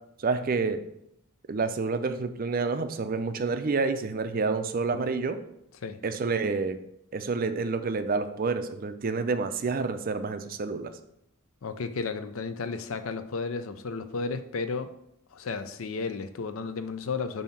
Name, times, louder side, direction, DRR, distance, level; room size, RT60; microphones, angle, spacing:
voice 1, 0.2-0.8 1.5-5.4 6.0-6.8 7.1-10.9, right 4 dB, 40° right, 9 dB, 0.4 m, -28 dB
voice 2, 11.6-14.9 15.3-17.4, left 4 dB, 70° left, 11 dB, 0.5 m, -33 dB
7.2 x 2.8 x 5.7 m, 0.77 s
head